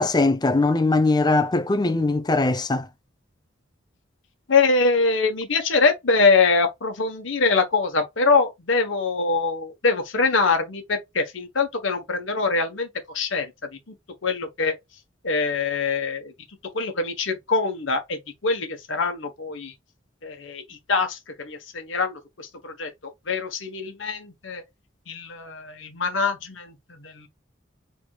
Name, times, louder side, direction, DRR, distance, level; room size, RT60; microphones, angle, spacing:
voice 1, 0.0-2.9, left 2 dB, 20° left, 0.5 m, -21 dB
voice 2, 4.5-13.5 13.9-14.0 14.2-14.7 15.2-16.3 16.7-19.7 20.2-24.6 25.1-27.3, left 4 dB, 75° left, 1.1 m, -24 dB
4.6 x 3.4 x 2.3 m
head